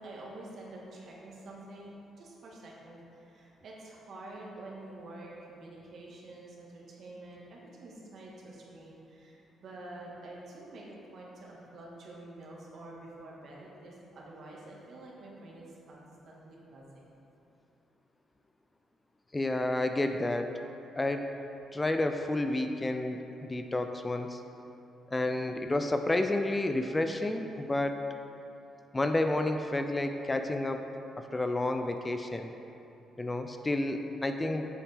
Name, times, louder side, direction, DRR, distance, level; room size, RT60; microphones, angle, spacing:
voice 1, 0.0-1.9 2.2-17.1, right 2 dB, 60° right, -3 dB, 1.8 m, -48 dB
voice 2, 19.3-20.6 21.0-21.3 21.7-24.4 25.1-28.0 28.9-30.9 31.2-32.5 33.2-34.7, left 2 dB, 20° left, 6 dB, 0.4 m, -30 dB
8.4 x 7.2 x 3.5 m, 2.8 s
cardioid pair, 90°, 0 cm